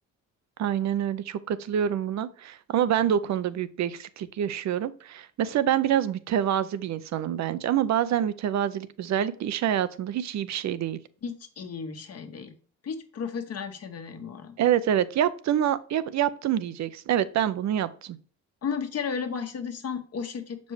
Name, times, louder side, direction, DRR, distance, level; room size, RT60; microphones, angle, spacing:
voice 1, 0.6-11.0 14.6-18.2, right 10 dB, 65° right, 0.7 m, -26 dB
voice 2, 11.2-12.5 12.8-14.6 18.6-20.7, left 6 dB, 55° left, 1.3 m, -34 dB
6.8 x 5.2 x 3.2 m
cardioid pair, 90°, 30 cm